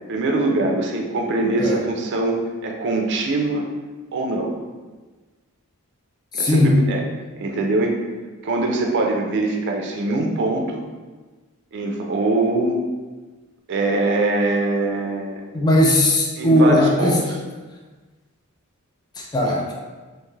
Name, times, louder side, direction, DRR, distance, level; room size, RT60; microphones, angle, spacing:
voice 1, 0.1-3.7 4.1-4.6 6.3-7.0 7.4-8.0 8.4-10.8 11.7-12.8 13.7-15.4 16.4-17.2 19.4-19.6, right 2 dB, 55° right, 2 dB, 0.4 m, -22 dB
voice 2, 6.3-6.8 15.5-17.1 19.2-19.7, left 1 dB, 20° left, -2 dB, 0.3 m, -18 dB
2.5 x 2.3 x 3.1 m, 1.3 s
head